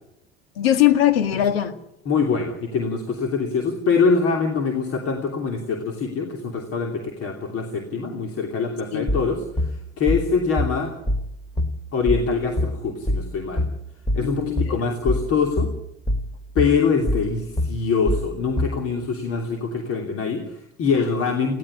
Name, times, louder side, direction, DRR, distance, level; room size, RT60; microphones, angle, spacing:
voice 1, 0.6-1.7 8.9-9.1 14.2-14.8, left 12 dB, 70° left, 11 dB, 1.9 m, -20 dB
voice 2, 2.0-10.9 11.9-13.7 14.1-15.7 16.5-21.6, left 5 dB, 45° left, 4 dB, 3.0 m, -24 dB
sound 1, 9.1-18.9, left 1 dB, 10° left, 2.0 m, -25 dB
19.5 x 16.0 x 9.8 m, 0.82 s
figure-of-eight pair, 65°, 31 cm